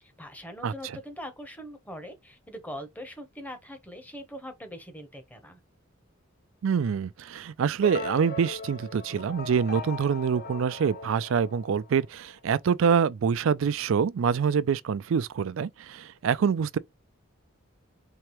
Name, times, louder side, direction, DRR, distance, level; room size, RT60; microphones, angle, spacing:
voice 1, 0.0-5.6, equal, 5° left, 0.9 m, -42 dB
voice 2, 6.6-16.8, right 6 dB, 65° right, 0.3 m, -25 dB
sound 1, 7.8-12.1, left 2 dB, 50° left, 0.7 m, -39 dB
4.7 x 2.8 x 3.0 m
head